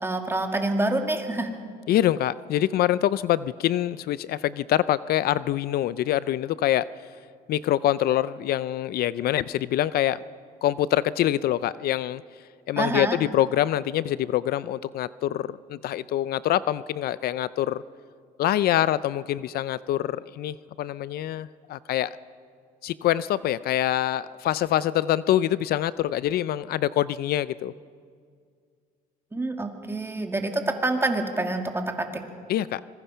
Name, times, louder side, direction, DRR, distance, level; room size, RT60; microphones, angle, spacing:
voice 1, 0.0-1.6 12.8-13.2 29.3-32.2, right 2 dB, 15° right, 4 dB, 2.2 m, -27 dB
voice 2, 1.9-6.9 7.5-10.2 10.6-12.2 12.7-17.8 18.4-22.2 22.8-27.7 32.5-32.8, left 12 dB, 65° left, 17 dB, 0.5 m, -25 dB
25.0 x 20.5 x 5.7 m, 2.1 s
cardioid pair, 110°, 17 cm